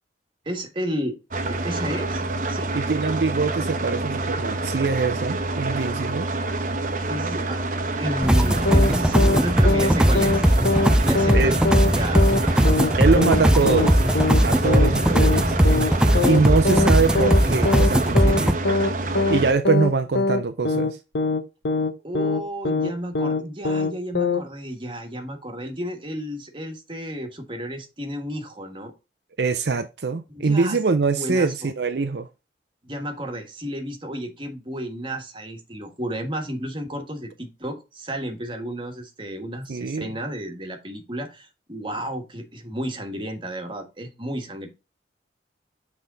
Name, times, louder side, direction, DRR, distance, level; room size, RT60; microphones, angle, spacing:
voice 1, 0.4-1.2 1.5-2.2 2.5-2.7 7.1-7.6 8.0-10.4 11.0-11.6 11.9-12.2 13.7-13.8 22.0-28.9 30.3-30.8 31.2-31.7 32.8-44.7, equal, 30° right, 1.4 m, -32 dB
sound 1, 1.3-19.5, right 2 dB, 50° right, 0.9 m, -27 dB
voice 2, 2.7-6.3 11.3-11.6 12.6-14.0 14.4-15.6 16.3-18.6 19.3-21.0 29.4-32.3 39.7-40.1, right 4 dB, 65° right, 0.5 m, -23 dB
sound 2, 8.2-18.5, equal, 5° right, 0.3 m, -19 dB
sound 3, 8.7-8.9 9.2-9.4 9.7-9.9 10.2-10.4 10.7-10.9 11.2-11.4 11.7-11.9 12.2-12.4 12.7-12.9 13.2-13.4 13.7-13.9 14.2-14.4 14.7-14.9 15.2-15.4 15.7-15.9 16.2-16.4 16.7-16.9 17.2-17.4 17.7-17.9 18.2-18.4 18.7-18.9 19.2-19.4 19.7-19.9 20.2-20.4 20.7-20.9 21.2-21.4 21.7-21.9 22.2-22.4 22.7-22.9 23.2-23.4 23.7-23.9 24.2-24.4, left 3 dB, 80° left, 0.8 m, -22 dB
7.8 x 3.6 x 3.8 m
head